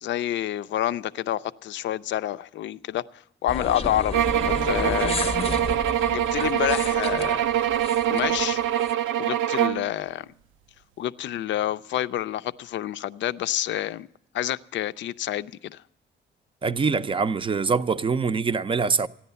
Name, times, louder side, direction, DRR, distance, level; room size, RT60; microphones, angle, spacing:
voice 1, 0.0-3.0 3.4-5.5 6.1-7.4 8.1-8.6 9.2-10.3 11.0-14.1 14.3-15.8, left 12 dB, 70° left, 0.5 m, -28 dB
sound 1, 3.5-8.9, left 4 dB, 30° left, 0.7 m, -33 dB
sound 2, 4.1-9.9, right 11 dB, 85° right, 0.4 m, -24 dB
voice 2, 16.6-19.1, right 5 dB, 25° right, 0.5 m, -24 dB
14.5 x 10.0 x 6.8 m
cardioid pair, 90°, 20 cm